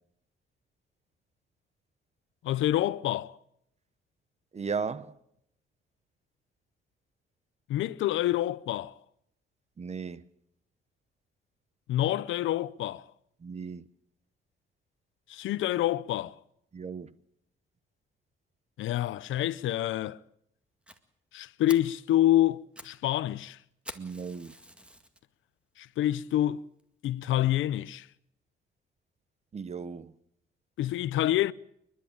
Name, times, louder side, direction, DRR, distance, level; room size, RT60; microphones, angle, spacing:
voice 1, 2.4-3.4 7.7-9.0 11.9-13.1 15.3-16.4 18.8-20.2 21.3-23.6 25.8-26.6 27.0-28.1 30.8-31.5, left 13 dB, 80° left, 0.7 m, -27 dB
voice 2, 4.5-5.1 9.8-10.2 13.4-13.8 16.7-17.1 24.0-24.5 29.5-30.1, right 5 dB, 35° right, 1.1 m, -36 dB
Fire, 20.9-21.0 21.4-21.5 21.7-22.0 22.5-23.0 23.2-23.3 23.8-25.2 25.8-25.9 26.4-26.5 26.8-26.9 27.2-27.3, equal, 5° right, 2.0 m, -46 dB
29.0 x 11.5 x 8.6 m
cardioid pair, 90°, 20 cm